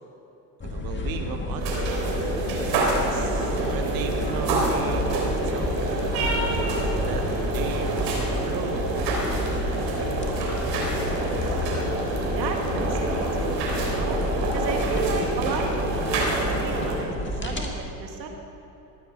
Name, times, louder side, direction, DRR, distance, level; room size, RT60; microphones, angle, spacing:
sound 1, 0.6-17.7, left 2 dB, 20° left, 2.0 m, -30 dB
voice 1, 0.6-2.0 3.1-6.0 6.5-6.8 7.0-9.4, right 6 dB, 45° right, 6 dB, 1.2 m, -35 dB
sound 2, 1.6-17.0, right 2 dB, 75° right, 3.7 m, -27 dB
voice 2, 12.3-14.2 14.5-18.3, right 4 dB, 90° right, 3 dB, 1.9 m, -33 dB
15.0 x 11.5 x 5.1 m, 3.0 s
hypercardioid pair, 85°, 50 cm